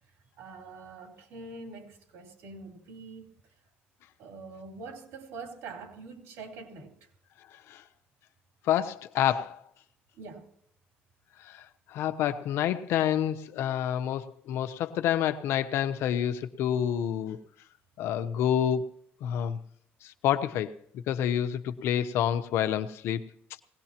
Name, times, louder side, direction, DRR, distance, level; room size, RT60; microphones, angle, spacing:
voice 1, 0.0-3.6 4.2-7.1 10.1-10.5, right 4 dB, 85° right, 3.6 m, -45 dB
voice 2, 8.6-9.6 11.4-17.4 18.0-18.9 19.2-19.6 20.0-20.7 21.1-23.2, left 10 dB, 80° left, 0.9 m, -28 dB
20.5 x 18.0 x 2.9 m
cardioid pair, 115°, 4 cm